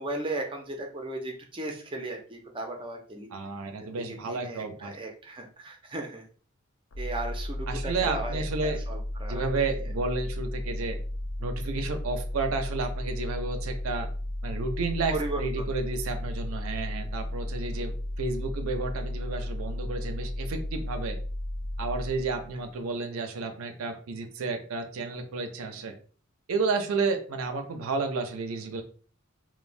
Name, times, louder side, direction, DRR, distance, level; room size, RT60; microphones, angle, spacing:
voice 1, 0.0-3.3 3.8-6.2 7.0-9.5 15.1-15.7, right 2 dB, 25° right, 2 dB, 0.5 m, -36 dB
voice 2, 3.3-5.0 7.7-8.8 9.3-11.0 11.4-14.1 14.4-21.2 21.8-25.9 26.5-28.8, right 3 dB, 80° right, 6 dB, 0.5 m, -31 dB
sound 1, 6.9-22.7, left 1 dB, 60° left, 0.5 m, -34 dB
3.1 x 2.1 x 2.5 m, 0.41 s
head